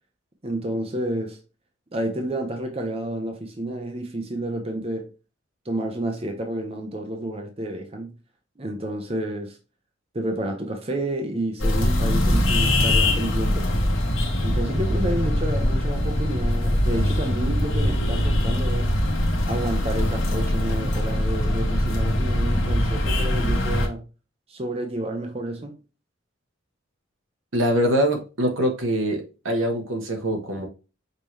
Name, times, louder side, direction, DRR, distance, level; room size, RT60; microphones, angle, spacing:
voice 1, 0.4-1.4 1.9-5.1 5.6-8.1 8.6-9.6 10.1-13.7 14.4-18.9 19.5-24.0 24.5-25.8, right 1 dB, 30° right, 0.8 m, -30 dB
sound 1, 11.6-23.9, left 1 dB, 85° left, 1.2 m, -22 dB
voice 2, 27.5-30.7, equal, 85° right, 1.2 m, -23 dB
5.4 x 3.0 x 3.2 m
head